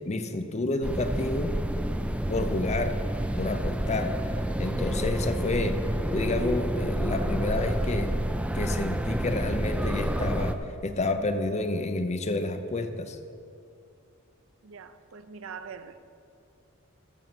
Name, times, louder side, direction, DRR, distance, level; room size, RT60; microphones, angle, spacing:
voice 1, 0.1-1.6 2.3-3.0 3.4-4.2 4.6-5.8 6.1-8.2 8.5-13.2, left 2 dB, 35° left, 0.7 m, -29 dB
sound 1, 0.8-10.5, right 1 dB, 5° right, 0.4 m, -29 dB
voice 2, 14.6-16.0, right 6 dB, 70° right, 0.5 m, -43 dB
13.5 x 5.4 x 6.0 m
head